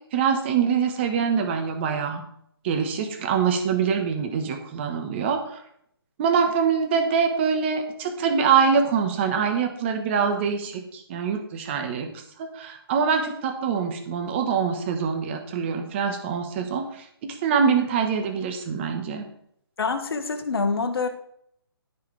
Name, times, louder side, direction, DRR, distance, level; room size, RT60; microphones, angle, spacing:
voice 1, 0.1-2.2 2.6-5.6 6.2-12.1 12.4-19.2, right 6 dB, 30° right, 5 dB, 1.1 m, -24 dB
voice 2, 19.8-21.1, left 4 dB, 70° left, 6 dB, 1.3 m, -26 dB
13.0 x 4.8 x 3.3 m, 0.71 s
hypercardioid pair, 160°, 13 cm